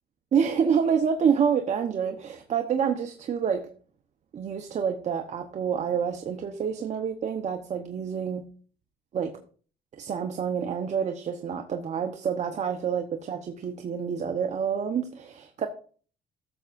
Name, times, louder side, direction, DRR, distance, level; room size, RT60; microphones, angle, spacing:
voice 1, 0.3-3.7 4.3-8.5 9.1-9.4 10.0-15.7, right 7 dB, 45° right, 5 dB, 0.9 m, -27 dB
15.0 x 6.8 x 2.5 m, 0.43 s
cardioid pair, 110°, 17 cm